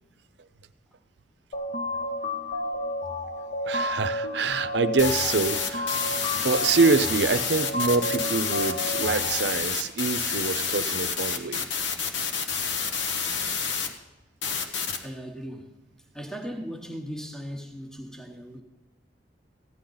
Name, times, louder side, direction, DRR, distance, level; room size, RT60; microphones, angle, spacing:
sound 1, 1.5-9.5, left 1 dB, 55° left, 0.9 m, -31 dB
voice 1, 3.6-6.0 6.4-11.7, right 4 dB, 65° right, 0.6 m, -25 dB
sound 2, 5.0-13.9 14.4-15.0, left 6 dB, 85° left, 1.2 m, -29 dB
voice 2, 15.0-15.7 16.1-18.6, equal, 5° left, 1.0 m, -38 dB
15.0 x 10.0 x 3.9 m
head